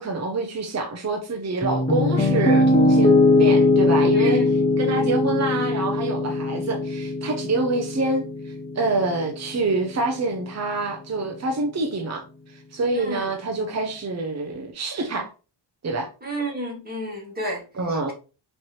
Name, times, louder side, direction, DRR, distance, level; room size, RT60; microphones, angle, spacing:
voice 1, 0.0-4.4 4.8-12.2 12.5-15.3 15.8-16.1 17.8-18.1, right 3 dB, 35° right, 0.7 m, -26 dB
Piano, 1.6-9.7, left 2 dB, 15° left, 0.6 m, -20 dB
voice 2, 4.1-4.5 5.0-5.2 12.9-13.3 16.2-18.1, right 1 dB, 20° right, 2.1 m, -31 dB
4.4 x 3.3 x 3.0 m
wide cardioid pair, 110°, 48 cm